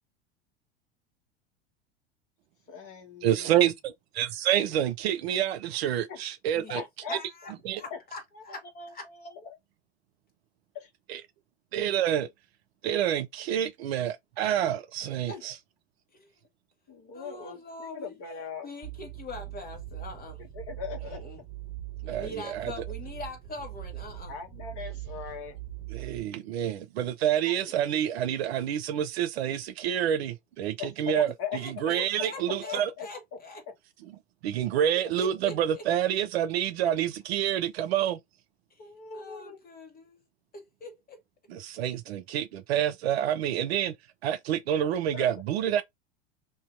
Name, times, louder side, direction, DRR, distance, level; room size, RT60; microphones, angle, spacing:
voice 1, 2.7-3.7 6.1-6.2 6.7-7.5 7.9-8.0 8.3-9.6 10.7-10.9 15.3-15.4 16.9-18.7 20.4-21.2 24.3-25.6 27.2-27.7 30.8-33.4 33.7-33.8 38.8-39.6 45.1-45.3, left 6 dB, 45° left, 1.4 m, -40 dB
voice 2, 3.2-6.8 7.6-7.8 11.1-11.2 11.7-12.3 12.8-15.5 22.1-22.7 25.9-31.3 31.6-32.9 34.4-38.2 41.5-43.9 44.2-45.8, right 10 dB, 70° right, 0.6 m, -28 dB
voice 3, 7.1-7.5 7.8-8.6 8.9-9.0 16.1-16.3 17.1-18.1 18.6-20.4 21.1-21.4 22.0-24.3 31.6-33.6 35.2-35.8 39.1-40.2 40.5-41.2, left 2 dB, 25° left, 1.6 m, -42 dB
sound 1, 18.8-26.2, right 15 dB, 20° right, 1.2 m, -41 dB
2.8 x 2.7 x 3.6 m
hypercardioid pair, 85°, 33 cm